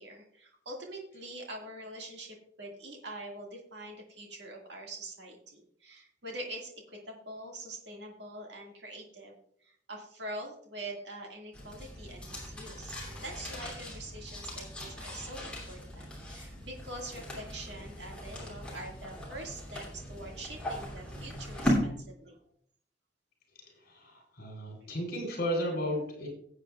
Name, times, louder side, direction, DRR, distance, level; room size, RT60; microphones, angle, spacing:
voice 1, 0.0-22.4, right 1 dB, 65° right, 0 dB, 2.1 m, -44 dB
sound 1, 11.5-21.8, equal, 5° left, 2.8 m, -38 dB
voice 2, 23.9-26.3, equal, 55° left, 1 dB, 4.0 m, -34 dB
17.5 x 8.2 x 2.4 m, 0.66 s
head